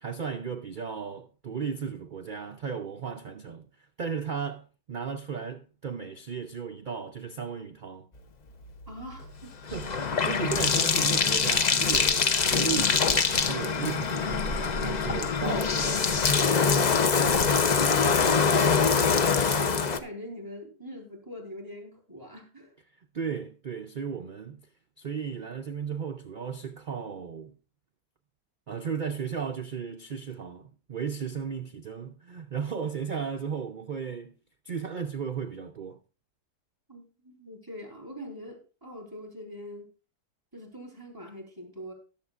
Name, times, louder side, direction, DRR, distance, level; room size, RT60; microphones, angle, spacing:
voice 1, 0.0-8.1 9.7-16.6 23.1-24.7 25.0-27.6 28.7-34.4 34.6-36.0, right 6 dB, 85° right, 0.4 m, -35 dB
Bathtub (filling or washing), 8.6-20.0, left 5 dB, 50° left, 0.5 m, -24 dB
voice 2, 8.9-9.5 10.7-10.8 18.8-22.7 36.9-39.9 40.5-41.9, equal, 15° right, 3.4 m, -43 dB
19.0 x 7.3 x 2.4 m
omnidirectional pair, 1.6 m